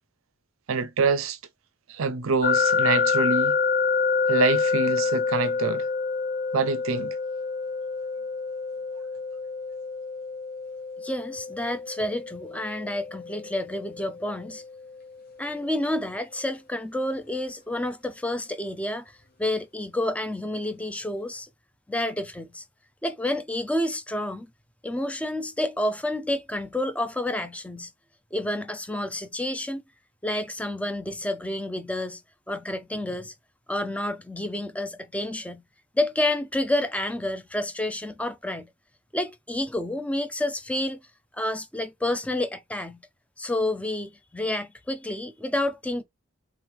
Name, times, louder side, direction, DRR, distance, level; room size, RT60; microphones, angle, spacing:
voice 1, 0.7-1.4 1.9-3.6 4.3-5.9 6.5-7.1, right 4 dB, 75° right, 0.5 m, -25 dB
sound 1, 2.4-15.3, left 5 dB, 45° left, 1.0 m, -27 dB
voice 2, 11.0-14.6 15.4-21.5 21.9-22.6 23.0-24.5 24.8-27.9 28.3-29.8 30.2-32.2 32.5-33.3 33.7-35.6 35.9-38.7 39.1-41.1 41.3-43.0 43.4-46.0, left 1 dB, 5° left, 0.5 m, -29 dB
3.5 x 3.1 x 3.4 m
head